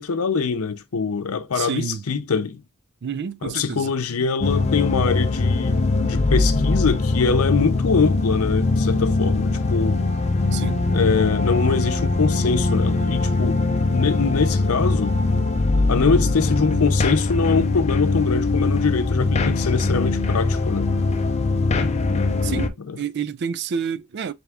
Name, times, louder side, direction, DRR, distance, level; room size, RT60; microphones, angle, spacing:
voice 1, 0.0-2.6 3.4-10.0 10.9-15.2 15.9-20.9 22.9-23.0, left 5 dB, 85° left, 0.6 m, -23 dB
voice 2, 1.5-2.0 3.0-3.9 10.5-10.8 22.4-24.3, right 7 dB, 50° right, 0.4 m, -29 dB
sound 1, 4.4-22.7, left 3 dB, 30° left, 0.5 m, -21 dB
3.5 x 3.4 x 3.4 m
head